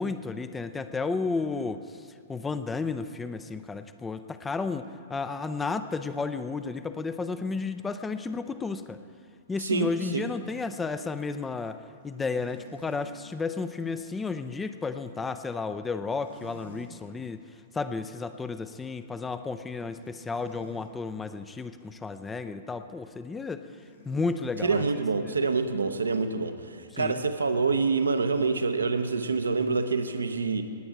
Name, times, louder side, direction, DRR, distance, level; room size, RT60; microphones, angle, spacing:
voice 1, 0.0-9.0 9.5-17.4 17.7-23.7 24.1-24.9 25.2-25.3 26.9-27.3, left 4 dB, 10° left, 11 dB, 0.5 m, -32 dB
voice 2, 9.6-10.3 24.6-30.7, right 4 dB, 70° right, 9 dB, 0.8 m, -27 dB
sound 1, 12.3-13.2 16.1-16.9 17.4-17.6 19.9-20.8 23.7-25.0 28.1-28.2, left 1 dB, 60° left, 3.1 m, -50 dB
19.0 x 8.7 x 4.7 m, 2.4 s
figure-of-eight pair, 105°, 0 cm